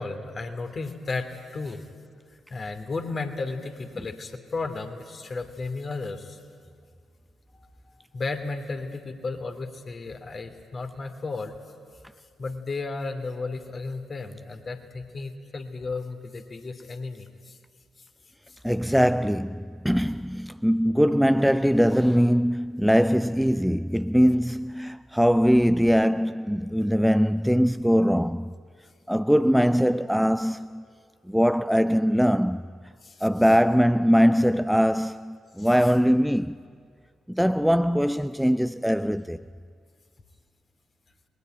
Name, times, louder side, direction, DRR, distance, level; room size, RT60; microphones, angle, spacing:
voice 1, 0.0-1.8 2.5-6.4 7.5-7.7 8.1-11.5 12.4-17.6 33.0-33.3 35.6-35.7, left 3 dB, 40° left, 2.9 m, -34 dB
voice 2, 18.6-28.5 29.1-30.8 31.3-32.6 33.2-36.6 37.3-39.4, equal, ahead, 0.6 m, -22 dB
29.5 x 21.0 x 9.2 m
figure-of-eight pair, 40°, 0 cm